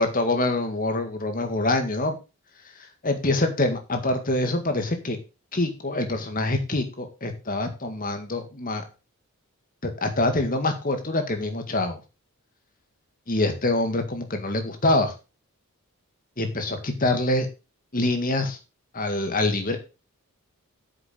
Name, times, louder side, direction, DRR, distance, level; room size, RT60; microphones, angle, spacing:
voice 1, 0.0-2.2 3.0-5.2 5.5-8.8 9.8-12.0 13.3-15.1 16.4-17.5 17.9-18.6 18.9-19.8, left 2 dB, 40° left, 6 dB, 1.9 m, -25 dB
8.7 x 6.8 x 5.3 m, 0.29 s
head